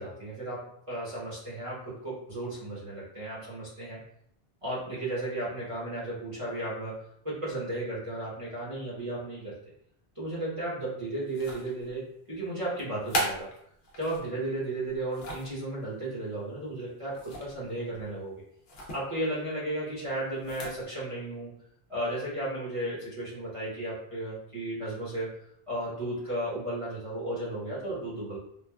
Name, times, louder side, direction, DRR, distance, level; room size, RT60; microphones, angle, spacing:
voice 1, 0.0-4.0 4.6-6.9 7.2-9.5 10.2-13.5 14.0-18.4 18.9-21.5 21.9-25.3 25.7-28.4, right 1 dB, 35° right, -8 dB, 0.9 m, -34 dB
sound 1, 11.3-11.9 12.8-14.3 14.9-15.6 17.1-17.7 17.9-18.1 18.7-19.0 20.3-20.8, equal, 60° left, 0.8 m, -36 dB
3.2 x 2.3 x 2.2 m, 0.70 s
omnidirectional pair, 1.0 m